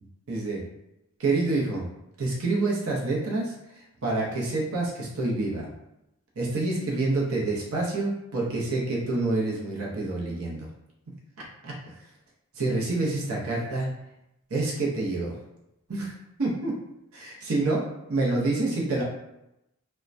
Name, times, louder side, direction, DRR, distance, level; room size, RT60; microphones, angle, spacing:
voice 1, 0.3-0.6 1.2-1.9 2.2-5.7 6.4-10.7 11.4-11.8 12.5-13.9 14.5-15.4 15.9-16.1 16.4-16.7 17.1-19.0, right 2 dB, 75° right, -3 dB, 0.6 m, -27 dB
3.1 x 2.1 x 2.5 m, 0.87 s
head